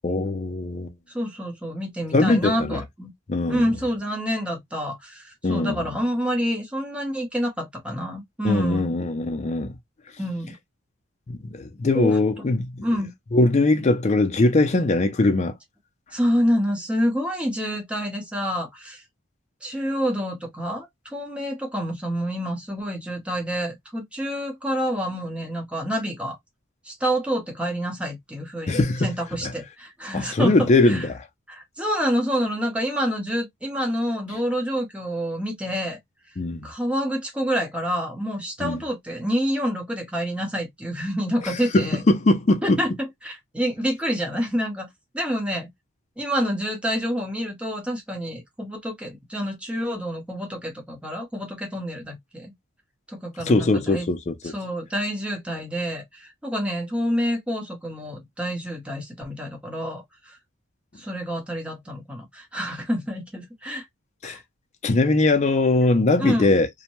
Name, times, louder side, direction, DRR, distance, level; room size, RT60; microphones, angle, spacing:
voice 1, 0.0-0.9 2.1-2.8 3.3-3.7 5.4-5.8 8.4-9.8 11.3-12.8 13.3-15.5 28.7-29.1 29.4-29.5 30.1-31.2 36.4-36.7 38.6-38.8 41.4-42.8 53.4-54.5 64.2-64.4 64.8-66.7, left 2 dB, 35° left, 0.4 m, -21 dB
voice 2, 1.1-3.1 3.5-9.0 10.2-10.5 11.9-12.2 12.8-13.1 16.1-19.0 19.6-26.4 26.8-31.1 31.5-36.0 36.6-42.0 42.6-42.9 43.2-44.9 45.1-45.7 46.2-52.5 53.1-54.1 54.4-60.4 61.0-63.9 64.2-64.4 66.2-66.5, equal, 5° right, 0.8 m, -28 dB
2.6 x 2.1 x 2.9 m
head